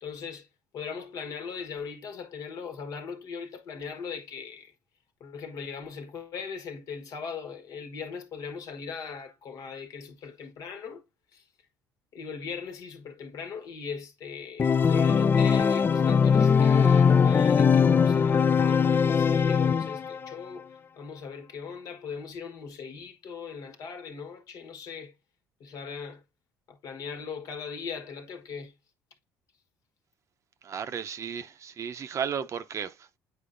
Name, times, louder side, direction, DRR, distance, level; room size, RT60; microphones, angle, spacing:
voice 1, 0.0-0.5 0.7-4.7 5.2-11.0 11.3-11.4 12.1-20.7 21.0-25.1 25.6-26.2 26.7-28.7, left 6 dB, 60° left, 1.3 m, -39 dB
Organ, 14.6-20.3, left 6 dB, 30° left, 0.4 m, -21 dB
voice 2, 30.6-33.2, right 7 dB, 45° right, 0.7 m, -34 dB
8.6 x 4.4 x 2.5 m
supercardioid pair, 85°, 7 cm